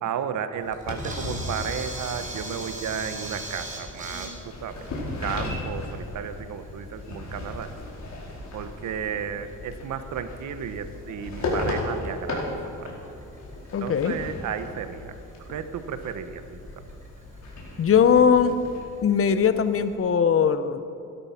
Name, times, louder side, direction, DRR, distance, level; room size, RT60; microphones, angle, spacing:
voice 1, 0.0-4.8 5.2-7.7 8.5-12.5 12.8-12.9 13.8-15.1 15.5-16.6, right 8 dB, 75° right, 10 dB, 1.2 m, -33 dB
Camera, 0.6-19.9, right 2 dB, 25° right, 4.5 m, -43 dB
sound 1, 0.8-18.8, left 2 dB, 65° left, 4.5 m, -36 dB
voice 2, 13.7-14.2 17.8-18.6 19.0-20.8, left 7 dB, 45° left, 11 dB, 1.0 m, -20 dB
17.0 x 12.5 x 5.9 m, 2.7 s
cardioid pair, 90°, 30 cm